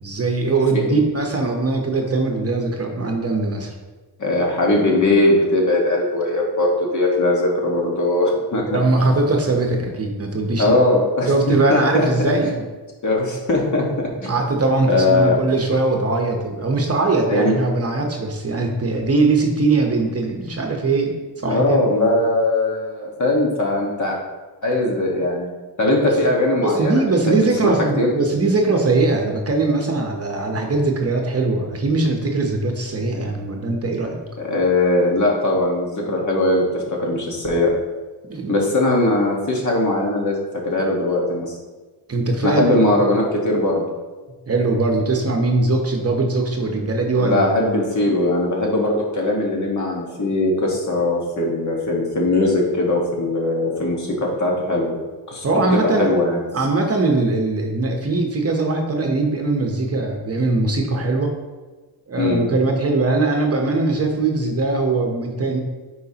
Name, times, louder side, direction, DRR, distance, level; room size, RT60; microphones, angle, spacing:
voice 1, 0.0-3.7 8.6-10.7 11.3-12.6 14.3-21.9 26.1-26.2 26.6-34.2 38.3-38.6 42.1-43.1 44.5-47.5 55.4-56.1 56.5-61.3 62.1-65.6, right 3 dB, 35° right, 2 dB, 0.9 m, -21 dB
voice 2, 4.2-8.8 10.6-12.3 13.0-14.3 14.9-15.4 17.3-17.5 21.4-24.2 24.6-25.5 25.8-27.7 28.0-28.1 34.4-37.7 38.5-40.4 40.6-41.6 42.4-43.9 47.1-55.0 55.3-55.5 55.7-56.4 62.2-62.4, left 2 dB, 45° left, -1 dB, 1.5 m, -20 dB
9.0 x 4.8 x 2.9 m, 1.3 s
wide cardioid pair, 135°, 42 cm